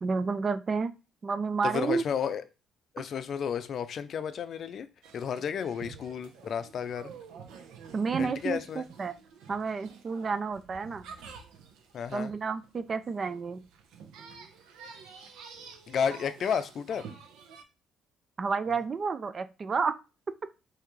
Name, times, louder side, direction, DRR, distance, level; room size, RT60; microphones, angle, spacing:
voice 1, 0.0-0.9 1.2-2.0 7.9-9.1 9.5-11.1 12.1-13.6 18.4-19.9, right 5 dB, 35° right, 0.4 m, -30 dB
voice 2, 1.6-2.4 2.9-4.9 5.1-7.1 8.2-8.9 11.9-12.3 15.9-17.1, left 7 dB, 55° left, 0.5 m, -32 dB
sound 1, 5.0-17.6, right 6 dB, 85° right, 0.9 m, -48 dB
5.7 x 2.9 x 3.2 m
cardioid pair, 100°, 0 cm